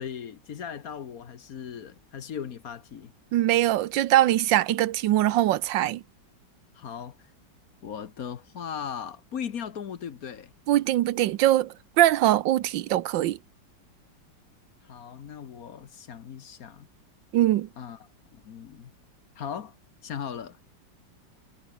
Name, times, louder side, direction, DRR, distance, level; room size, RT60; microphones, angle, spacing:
voice 1, 0.0-3.1 6.7-7.2 7.8-10.5 14.8-16.9 17.8-18.0 18.3-18.9 19.4-19.8 20.0-20.6, left 8 dB, 55° left, 1.5 m, -38 dB
voice 2, 3.3-6.0 10.7-13.4 17.3-17.7, right 14 dB, 85° right, 1.5 m, -22 dB
omnidirectional pair, 2.0 m